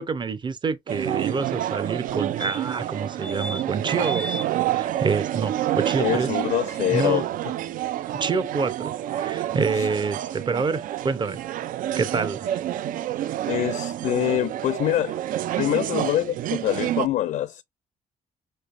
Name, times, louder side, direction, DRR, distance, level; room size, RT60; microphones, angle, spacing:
voice 1, 0.0-6.3 6.9-7.2 8.1-11.4 12.0-12.6, right 4 dB, 35° right, 0.7 m, -27 dB
sound 1, 0.9-17.1, right 12 dB, 75° right, 0.4 m, -28 dB
sound 2, 2.1-2.2 2.4-2.9 3.2-3.6 4.0-4.5 6.8-6.9 7.1-7.2, left 1 dB, 5° left, 0.4 m, -35 dB
voice 2, 6.0-7.3 9.7-9.9 13.5-15.2 15.6-17.6, left 13 dB, 75° left, 0.4 m, -25 dB
5.2 x 3.2 x 2.5 m
cardioid pair, 95°, 14 cm